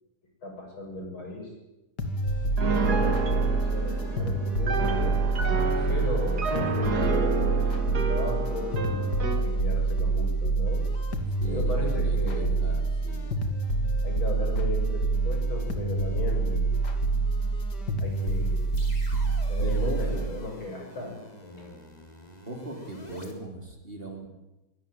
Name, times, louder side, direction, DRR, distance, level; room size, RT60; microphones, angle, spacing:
voice 1, 0.4-1.5 2.6-5.2 5.9-7.6 7.9-10.8 11.4-12.5 14.0-16.8 18.0-18.6 19.5-21.8, left 2 dB, 70° left, 2 dB, 7.6 m, -36 dB
sound 1, 2.0-20.3, right 3 dB, 50° left, 2.8 m, -26 dB
Piano, 2.6-9.5, right 4 dB, 50° right, 2.7 m, -30 dB
voice 2, 5.8-6.2 11.4-13.3 19.6-20.3 22.5-24.3, right 1 dB, 25° right, 3 dB, 3.9 m, -39 dB
sound 2, 18.0-23.3, left 1 dB, 20° left, 3.4 m, -48 dB
24.0 x 17.5 x 9.3 m, 1.0 s
omnidirectional pair, 2.3 m